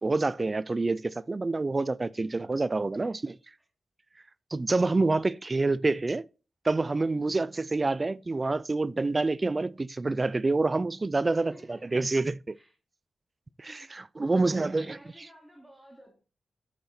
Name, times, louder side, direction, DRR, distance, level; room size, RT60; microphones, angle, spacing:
voice 1, 0.0-3.4 4.5-6.3 6.6-12.6 13.6-15.3, right 3 dB, 25° right, 0.3 m, -27 dB
voice 2, 11.3-12.3 12.5-12.7 13.8-16.1, equal, ahead, 2.0 m, -54 dB
8.4 x 5.8 x 4.3 m
wide cardioid pair, 105°, 0 cm